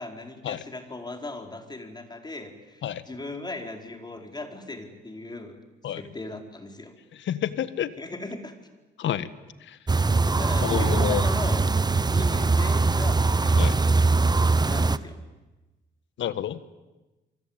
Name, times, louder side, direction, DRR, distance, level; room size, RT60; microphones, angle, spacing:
voice 1, 0.0-5.6 5.9-6.9 8.0-8.5 10.3-11.6 12.1-13.8 14.6-15.2, left 2 dB, 20° left, 5 dB, 4.5 m, -38 dB
voice 2, 7.1-7.9 9.0-9.3 9.6-9.8 10.6-11.3 13.6-13.8 16.2-16.6, left 10 dB, 70° left, 15 dB, 1.6 m, -29 dB
sound 1, 9.9-15.0, right 3 dB, 20° right, 1.0 m, -22 dB
27.0 x 24.0 x 8.9 m, 1.1 s
cardioid pair, 90°, 20 cm